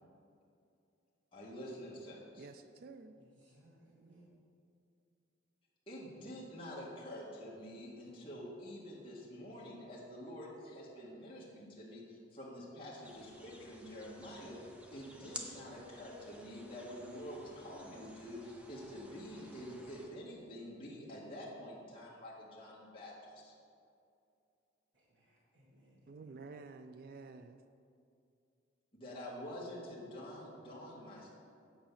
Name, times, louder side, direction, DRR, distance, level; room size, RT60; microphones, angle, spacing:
voice 1, 1.3-2.5 5.9-23.5 28.9-31.3, equal, 25° left, -7 dB, 1.6 m, -47 dB
voice 2, 2.4-3.2 26.1-27.6, right 4 dB, 50° right, 8 dB, 0.3 m, -51 dB
voice 3, 3.2-4.3 24.9-26.3, right 1 dB, 70° right, -7 dB, 1.9 m, -65 dB
sound 1, 13.0-20.1, equal, 5° right, 0.7 m, -53 dB
8.9 x 5.2 x 7.2 m, 2.5 s
head